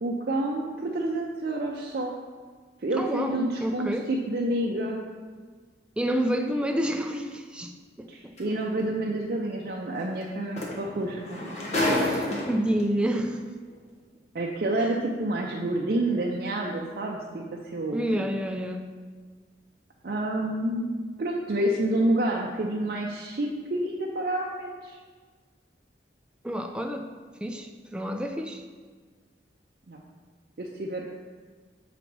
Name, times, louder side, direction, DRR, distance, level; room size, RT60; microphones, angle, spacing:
voice 1, 0.0-2.1 2.8-5.0 8.1-11.4 14.3-18.2 20.0-20.9 21.2-25.0 29.9-30.0 30.6-31.0, right 1 dB, 55° right, -1 dB, 0.5 m, -29 dB
voice 2, 3.0-4.1 6.0-7.7 8.2-8.3 12.0-13.4 17.9-18.9 26.4-27.1 27.4-28.6, equal, 5° right, 4 dB, 0.3 m, -29 dB
sound 1, 8.4-8.5 10.2-10.3 10.6-12.8 13.7-13.8, left 1 dB, 40° left, 1.1 m, -28 dB
7.1 x 4.0 x 4.6 m, 1.5 s
head